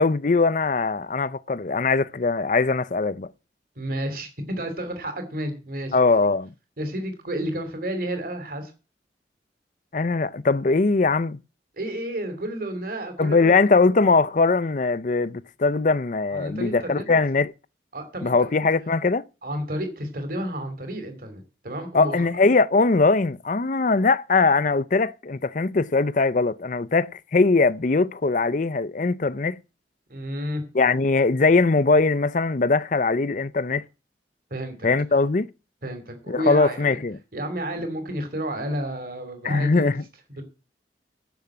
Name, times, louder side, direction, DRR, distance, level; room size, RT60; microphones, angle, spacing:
voice 1, 0.0-3.3 5.9-6.5 9.9-11.4 13.2-17.5 18.2-19.2 21.9-29.6 30.7-33.8 34.8-35.5 36.3-37.2 39.4-40.0, left 3 dB, 45° left, 0.6 m, -21 dB
voice 2, 3.8-6.0 6.8-8.7 11.8-13.8 16.3-17.0 17.9-18.3 19.4-22.3 30.1-30.6 34.5-34.7 35.8-37.0 37.3-39.9 40.3-40.4, right 1 dB, 55° right, 3.0 m, -31 dB
10.5 x 7.1 x 8.6 m
head